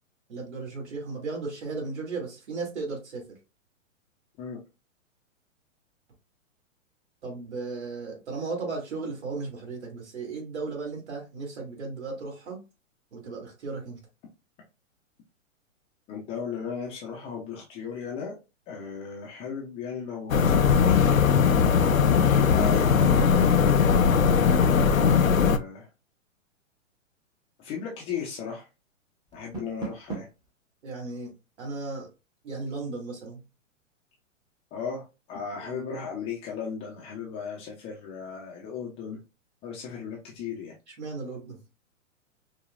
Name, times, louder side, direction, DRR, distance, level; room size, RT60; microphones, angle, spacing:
voice 1, 0.3-3.2 7.2-12.6 13.1-14.0 30.8-31.3 31.6-32.1 32.4-33.4 35.5-35.9 40.9-41.6, right 3 dB, 60° right, 0 dB, 2.1 m, -35 dB
voice 2, 16.1-18.3 18.7-21.0 22.0-23.0 24.9-25.9 27.6-28.7 29.3-30.3 34.7-39.2 39.6-40.7, left 6 dB, 15° left, -2 dB, 0.5 m, -36 dB
sound 1, 20.3-25.6, left 6 dB, 90° left, 0.5 m, -20 dB
Door, 29.3-30.5, right 5 dB, 10° right, 0.9 m, -38 dB
5.1 x 2.2 x 2.4 m, 0.28 s
figure-of-eight pair, 115°, 39 cm